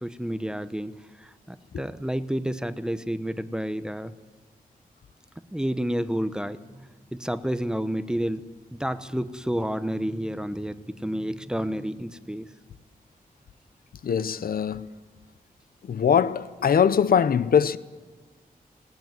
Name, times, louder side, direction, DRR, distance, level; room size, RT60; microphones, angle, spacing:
voice 1, 0.0-4.1 5.4-8.5 8.7-12.5, equal, 5° right, 0.9 m, -30 dB
voice 2, 14.0-14.9 15.8-17.8, left 7 dB, 75° left, 0.7 m, -22 dB
19.5 x 18.0 x 9.3 m
wide cardioid pair, 140°, 15 cm